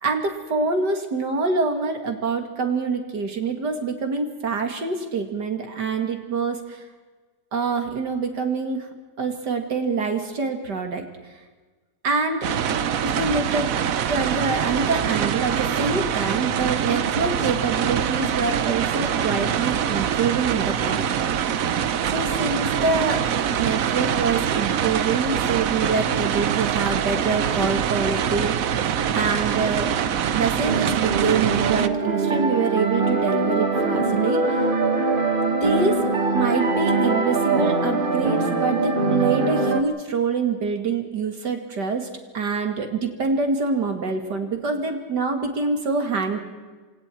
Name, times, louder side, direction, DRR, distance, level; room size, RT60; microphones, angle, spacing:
voice 1, 0.0-6.9 7.5-8.9 9.2-11.1 12.0-12.5 13.0-13.7 14.1-21.8 22.1-23.2 23.6-28.8 29.1-29.9 30.3-34.7 35.6-36.0 36.3-42.1 42.3-46.4, right 4 dB, 75° right, 5 dB, 2.8 m, -25 dB
sound 1, 12.4-31.9, right 8 dB, 60° right, 1.2 m, -24 dB
sound 2, 30.7-39.8, right 3 dB, 30° right, 1.7 m, -22 dB
29.0 x 25.0 x 4.5 m, 1.3 s
omnidirectional pair, 1.8 m